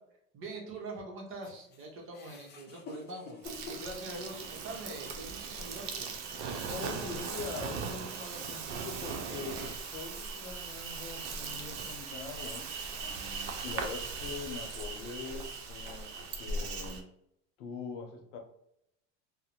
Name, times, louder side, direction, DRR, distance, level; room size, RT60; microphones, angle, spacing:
voice 1, 0.3-6.1, right 2 dB, 35° right, 0 dB, 0.8 m, -44 dB
sound 1, 1.4-4.9 5.4-5.5 6.5-6.6, left 3 dB, 30° left, 0.5 m, -48 dB
Insect, 3.4-17.0, right 4 dB, 80° right, 0.6 m, -39 dB
voice 2, 6.7-17.1 17.6-18.4, left 4 dB, 90° left, 4 dB, 0.7 m, -43 dB
2.4 x 2.1 x 2.9 m, 0.78 s
supercardioid pair, 115°, 35 cm